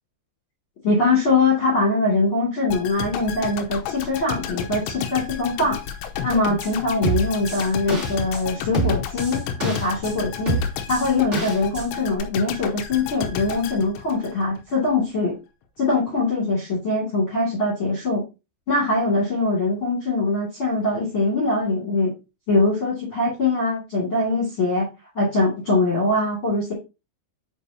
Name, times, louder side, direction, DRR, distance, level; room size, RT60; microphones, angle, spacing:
voice 1, 0.8-5.8 6.2-10.6 10.9-15.3 15.8-18.2 18.7-22.1 22.5-24.9 25.1-26.7, left 2 dB, 35° left, -6 dB, 2.3 m, -22 dB
sound 1, 2.7-14.7 15.0-15.2, left 7 dB, 80° left, 2.9 m, -32 dB
sound 2, 6.6-6.7 7.0-8.4 8.7-10.1 10.4-11.8 12.2-12.3, right 2 dB, 25° right, 1.5 m, -26 dB
8.3 x 4.9 x 2.8 m, 0.27 s
omnidirectional pair, 5.3 m